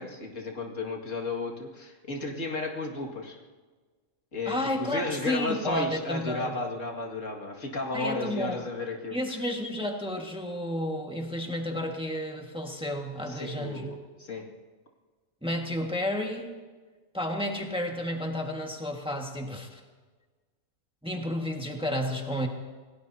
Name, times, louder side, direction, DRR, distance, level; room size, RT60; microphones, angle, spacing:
voice 1, 0.0-3.4 4.3-9.4 13.3-14.0 14.3-14.5, left 2 dB, 80° left, 1 dB, 2.5 m, -33 dB
voice 2, 4.4-6.6 7.9-8.6 9.1-14.0 15.4-16.6 17.1-19.8 21.0-22.5, left 1 dB, 5° right, 1 dB, 1.6 m, -31 dB
27.5 x 18.0 x 2.8 m, 1.4 s
omnidirectional pair, 1.3 m